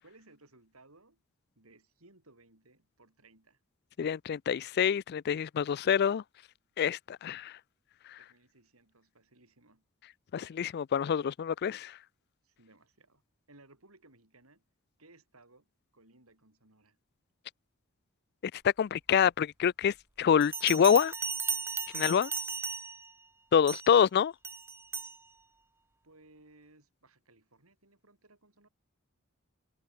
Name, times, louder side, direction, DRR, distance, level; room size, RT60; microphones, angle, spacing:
voice 1, 0.0-1.2 1.5-3.6 8.2-9.9 12.4-13.2 13.5-14.6 15.0-17.0 26.0-28.7, right 2 dB, 85° right, 6.3 m, -61 dB
voice 2, 4.0-6.2 6.8-7.5 10.3-12.0 18.5-21.1 21.9-22.3 23.5-24.3, left 8 dB, 50° left, 0.3 m, -26 dB
Bell, 20.4-23.1 23.7-24.0 24.4-25.2, right 5 dB, 10° right, 0.5 m, -36 dB
head